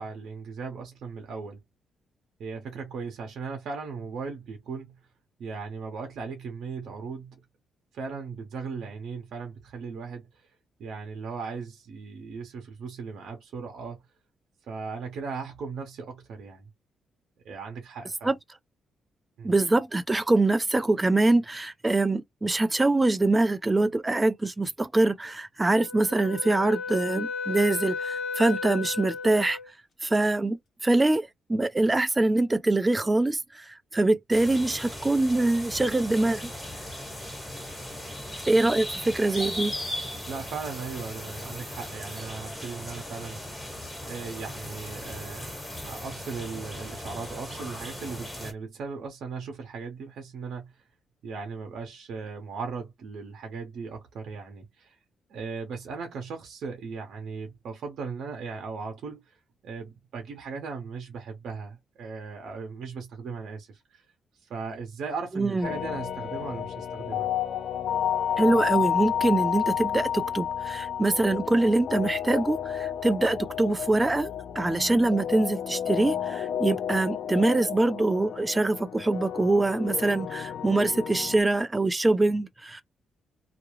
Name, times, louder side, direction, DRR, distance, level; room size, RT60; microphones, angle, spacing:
voice 1, 0.0-1.6 2.4-5.0 5.4-7.4 7.9-10.5 10.8-14.0 14.6-16.7 17.4-18.4 19.4-19.5 40.3-43.4 44.0-45.5 45.8-50.7 51.2-55.0 55.3-59.4 59.6-64.0 64.4-67.3, right 5 dB, 75° right, 0.7 m, -37 dB
voice 2, 19.4-29.6 30.0-36.5 38.5-39.7 65.3-65.7 68.4-82.8, right 2 dB, 15° right, 0.4 m, -24 dB
Wind instrument woodwind instrument, 25.6-29.7, left 4 dB, 50° left, 1.0 m, -34 dB
sound 1, 34.3-48.5, left 1 dB, 10° left, 1.3 m, -38 dB
sound 2, 65.6-81.4, left 9 dB, 65° left, 0.3 m, -31 dB
2.3 x 2.0 x 3.0 m
cardioid pair, 95°, 0 cm